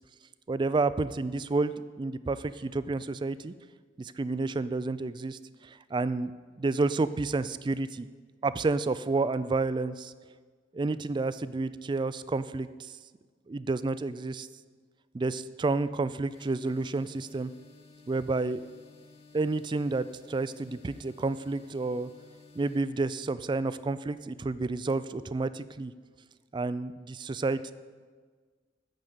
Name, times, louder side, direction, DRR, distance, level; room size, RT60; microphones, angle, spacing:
voice 1, 0.5-3.5 4.0-6.3 6.6-8.1 8.4-10.1 10.7-12.9 13.5-14.5 15.1-17.5 18.1-18.6 19.3-22.1 22.6-25.9 26.5-27.7, right 3 dB, 25° right, 15 dB, 0.3 m, -30 dB
sound 1, 16.3-22.8, left 4 dB, 55° left, 3.1 m, -55 dB
9.0 x 6.6 x 7.8 m, 1.5 s
head